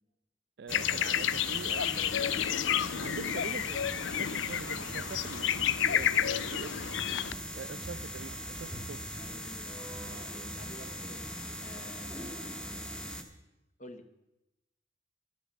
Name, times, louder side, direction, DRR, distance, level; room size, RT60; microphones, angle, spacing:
voice 1, 0.6-2.4 3.0-6.8 7.5-9.0, right 5 dB, 60° right, 0.4 m, -43 dB
sound 1, 0.7-7.3, left 10 dB, 80° left, 0.4 m, -30 dB
sound 2, 0.7-13.2, equal, 5° left, 1.0 m, -40 dB
voice 2, 9.2-11.3 11.6-12.6 13.8-14.1, left 2 dB, 40° left, 1.0 m, -51 dB
13.5 x 11.5 x 5.3 m
head